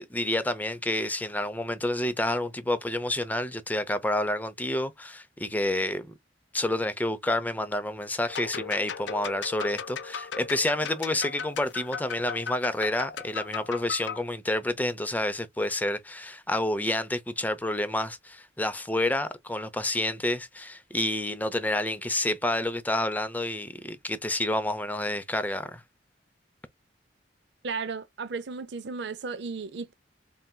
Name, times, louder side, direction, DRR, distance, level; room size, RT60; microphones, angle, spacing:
voice 1, 0.0-6.1 6.5-25.8, left 1 dB, 10° left, 0.5 m, -29 dB
sound 1, 8.3-14.2, left 6 dB, 70° left, 0.6 m, -37 dB
voice 2, 27.6-29.9, right 4 dB, 65° right, 0.6 m, -34 dB
4.3 x 3.3 x 2.2 m
head